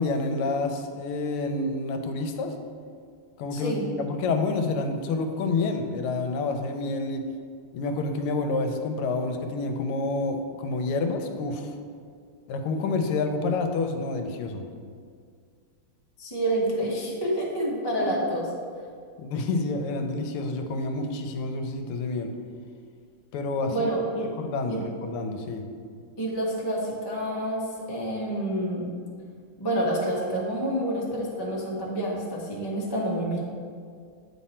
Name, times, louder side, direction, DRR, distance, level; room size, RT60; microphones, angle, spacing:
voice 1, 0.0-2.6 3.4-7.3 7.7-11.8 12.5-14.6 19.2-22.3 23.3-23.7 24.4-25.7, left 3 dB, 85° left, 6 dB, 1.5 m, -28 dB
voice 2, 3.5-3.8 16.2-18.4 23.7-24.3 24.7-24.8 26.2-28.9 29.6-33.4, right 1 dB, 35° left, -4 dB, 0.4 m, -28 dB
8.5 x 3.7 x 4.2 m, 2.1 s
omnidirectional pair, 2.4 m